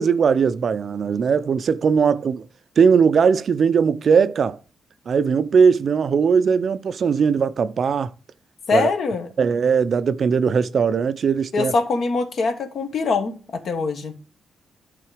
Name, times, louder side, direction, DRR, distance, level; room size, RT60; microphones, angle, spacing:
voice 1, 0.0-2.5 2.8-4.6 5.1-8.1 8.7-8.9 9.4-11.7, right 6 dB, 50° right, 0.4 m, -19 dB
voice 2, 8.7-9.3 11.5-14.1, left 4 dB, 55° left, 1.3 m, -23 dB
11.0 x 3.8 x 4.9 m
cardioid pair, 130°, 0 cm